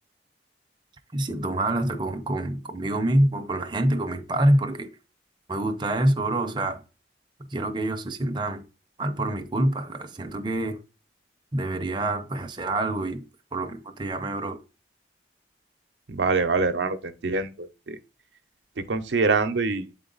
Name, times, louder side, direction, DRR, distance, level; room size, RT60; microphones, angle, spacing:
voice 1, 1.1-4.9 5.5-6.8 7.5-8.7 9.0-10.8 11.5-13.2 13.5-14.6, right 1 dB, 25° right, 0.6 m, -26 dB
voice 2, 16.1-18.0 18.8-19.9, right 4 dB, 80° right, 0.7 m, -25 dB
7.8 x 3.9 x 3.9 m
head